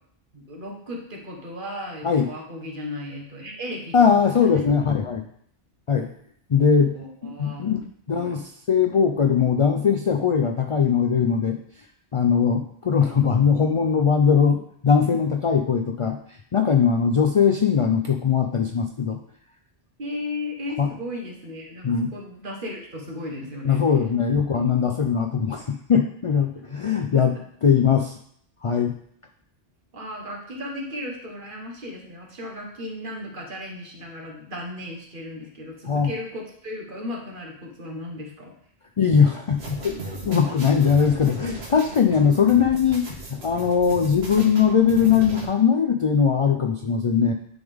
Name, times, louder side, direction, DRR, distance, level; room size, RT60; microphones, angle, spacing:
voice 1, 0.3-3.9 4.2-4.6 6.7-7.7 8.1-8.3 20.0-23.8 26.5-26.6 26.9-27.4 29.9-38.5, left 1 dB, 55° right, 0 dB, 1.4 m, -35 dB
voice 2, 3.9-5.3 5.9-6.1 6.5-7.0 7.2-11.6 12.1-16.2 16.5-19.2 20.8-20.9 21.8-22.1 23.6-27.3 27.6-28.1 28.6-29.0 35.9-36.1 39.0-47.3, left 6 dB, 50° left, 4 dB, 0.4 m, -20 dB
sound 1, 39.6-45.4, right 1 dB, 80° right, 1.5 m, -37 dB
9.6 x 3.5 x 3.5 m, 0.65 s
omnidirectional pair, 1.1 m